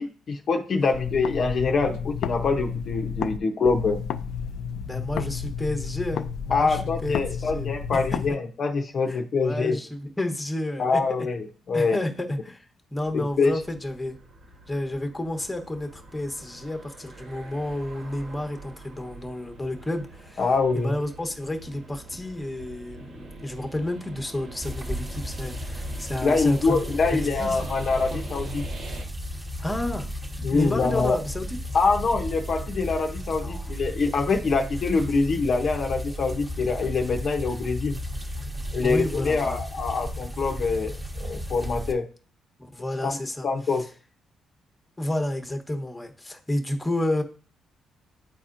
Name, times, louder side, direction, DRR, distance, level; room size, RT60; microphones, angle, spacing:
voice 1, 0.0-4.0 6.5-9.8 10.8-12.0 13.1-13.5 20.4-20.9 26.2-28.7 30.4-31.2 31.7-38.0 38.7-42.1 43.0-43.2 43.4-43.8, left 4 dB, 50° left, 4 dB, 0.7 m, -25 dB
sound 1, 0.9-3.4 3.6-8.3, left 7 dB, 80° left, 0.3 m, -32 dB
voice 2, 4.8-8.2 9.1-11.0 11.7-14.2 14.7-20.4 20.7-26.8 27.1-27.7 28.1-28.2 29.6-30.1 30.4-31.6 33.3-33.8 38.8-39.6 42.6-43.5 45.0-47.2, left 1 dB, 10° left, 4 dB, 1.0 m, -31 dB
sound 2, 12.9-29.0, right 2 dB, 70° right, 1.7 m, -44 dB
sound 3, 24.6-41.9, equal, 15° right, 1.1 m, -34 dB
10.0 x 4.2 x 2.5 m, 0.40 s
cardioid pair, 90°, 0 cm